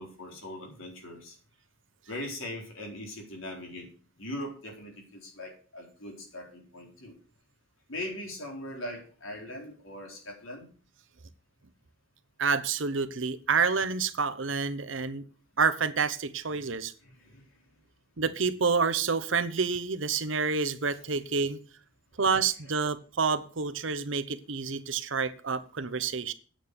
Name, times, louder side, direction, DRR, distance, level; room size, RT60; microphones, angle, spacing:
voice 1, 0.0-1.4 2.1-3.9 4.2-7.1 7.9-10.7 17.0-17.4 22.2-22.3, left 1 dB, 90° left, 1 dB, 4.1 m, -40 dB
voice 2, 12.4-15.3 15.6-16.9 18.2-21.6 22.2-26.3, right 5 dB, 75° right, 12 dB, 1.0 m, -28 dB
9.2 x 7.7 x 6.7 m, 0.40 s
head